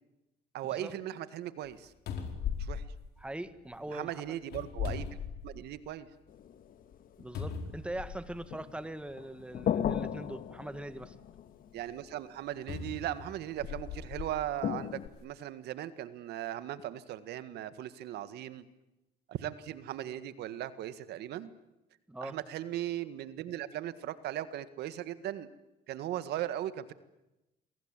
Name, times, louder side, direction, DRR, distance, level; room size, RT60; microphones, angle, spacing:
voice 1, 0.5-1.9 2.6-2.8 3.9-5.0 5.4-6.1 11.7-18.6 19.3-21.5 22.2-25.5 25.9-26.9, right 12 dB, 75° right, 14 dB, 1.8 m, -38 dB
sound 1, 1.7-1.8 2.1-3.8 4.4-5.9 6.3-6.4 7.3-8.5 9.4-9.5 12.7-14.3 15.0-15.2, left 7 dB, 75° left, 4.8 m, -38 dB
voice 2, 3.2-4.2 7.2-11.1 22.1-22.4, right 1 dB, 5° right, 12 dB, 1.9 m, -41 dB
sound 2, 6.3-7.5 8.0-8.9 9.2-12.0 13.5-13.6 14.6-15.1, left 9 dB, 55° left, 1.7 m, -36 dB
28.5 x 22.5 x 9.0 m, 0.96 s
cardioid pair, 110°, 17 cm